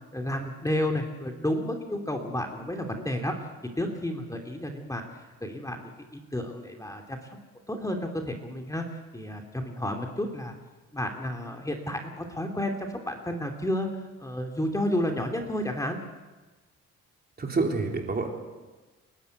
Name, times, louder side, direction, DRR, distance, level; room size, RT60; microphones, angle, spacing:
voice 1, 0.1-3.3 3.8-5.0 5.4-7.4 7.7-10.5 10.9-16.0, left 1 dB, 10° left, 3 dB, 2.6 m, -31 dB
voice 2, 17.4-18.3, right 3 dB, 30° right, 2 dB, 3.7 m, -27 dB
29.0 x 12.0 x 8.2 m, 1.2 s
cardioid pair, 90°, 30 cm